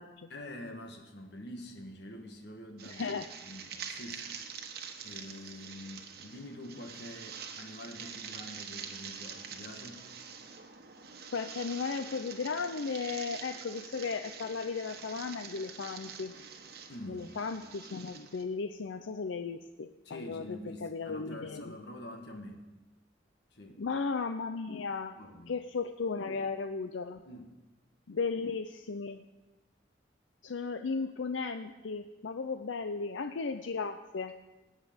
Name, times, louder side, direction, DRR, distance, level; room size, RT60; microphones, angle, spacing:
voice 1, 0.3-3.1 3.4-4.3 5.0-10.1 16.9-17.3 20.0-22.7 23.5-23.8 25.1-25.5 27.2-27.5, left 1 dB, 65° left, 3 dB, 1.4 m, -46 dB
sound 1, 2.8-18.4, right 6 dB, 55° right, 1.2 m, -45 dB
voice 2, 2.9-3.3 11.3-16.3 17.1-21.8 23.8-25.1 25.5-27.2 28.1-29.2 30.4-34.3, left 4 dB, 85° left, 8 dB, 0.5 m, -35 dB
17.5 x 9.1 x 5.1 m, 1.1 s
head